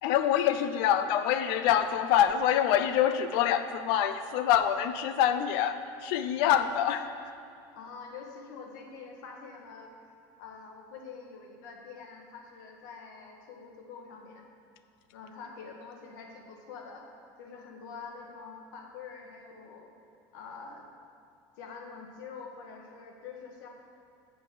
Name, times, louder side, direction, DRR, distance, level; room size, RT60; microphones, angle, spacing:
voice 1, 0.0-7.1, left 10 dB, 60° left, 9 dB, 0.5 m, -26 dB
voice 2, 7.7-9.9 10.4-14.5 15.1-17.0 17.4-19.9 20.3-20.8 21.6-23.7, left 5 dB, 80° left, 1 dB, 1.4 m, -46 dB
7.6 x 5.4 x 6.8 m, 2.5 s
cardioid pair, 170°, 10 cm